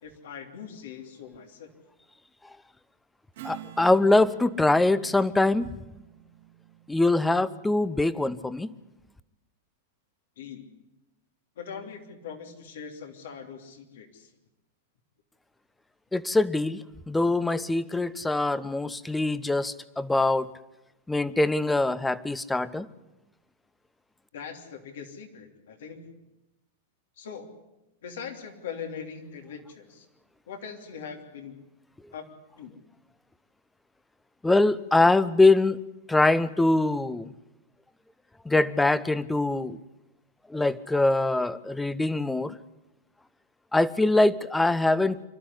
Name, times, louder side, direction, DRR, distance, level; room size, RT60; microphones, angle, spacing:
voice 1, 0.0-1.7 10.4-10.7 11.6-14.3 24.3-26.2 27.2-27.5 28.0-30.1 30.5-31.6 32.1-32.2 32.6-32.7, left 6 dB, 75° left, 5 dB, 3.2 m, -41 dB
Strum, 3.3-8.2, right 14 dB, 70° right, 2.6 m, -48 dB
voice 2, 3.4-5.7 6.9-8.7 16.1-20.5 21.1-22.9 34.4-35.8 36.1-37.3 38.4-39.8 40.5-42.6 43.7-45.3, left 2 dB, 10° left, 16 dB, 0.9 m, -23 dB
26.0 x 12.5 x 9.9 m, 0.98 s
hypercardioid pair, 110°, 0 cm